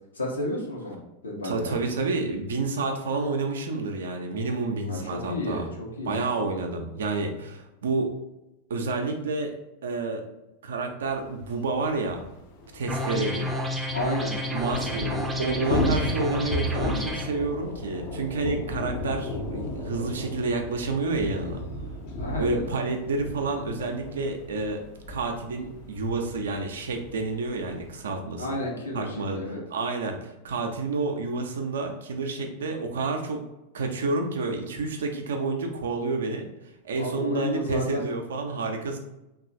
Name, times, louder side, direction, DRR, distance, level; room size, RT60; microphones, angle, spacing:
voice 1, 0.1-1.8 4.9-5.7 6.0-6.2 13.9-14.3 22.2-22.8 28.4-29.6 36.9-38.0, left 1 dB, 75° left, -2 dB, 0.8 m, -31 dB
voice 2, 1.4-5.7 6.1-8.1 8.7-9.5 9.8-10.2 10.6-12.2 12.7-13.5 14.5-21.6 22.4-24.8 25.1-28.6 28.9-29.4 29.7-33.4 33.7-36.5 36.8-39.0, right 3 dB, 65° right, 4 dB, 0.4 m, -29 dB
Thunder / Rain, 11.4-11.5 11.7-11.8 12.1-28.0, left 1 dB, 45° left, 0.5 m, -34 dB
sound 1, 12.9-17.3, equal, 10° right, 0.5 m, -31 dB
3.0 x 2.3 x 2.6 m, 0.93 s
figure-of-eight pair, 90°, 0 cm